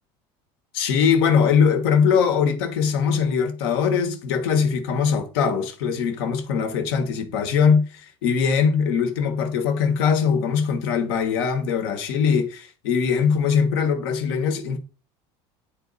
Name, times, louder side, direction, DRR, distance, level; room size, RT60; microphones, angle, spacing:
voice 1, 0.7-14.8, left 6 dB, 85° left, 1.4 m, -21 dB
8.5 x 4.0 x 4.1 m
supercardioid pair, 115°, 12 cm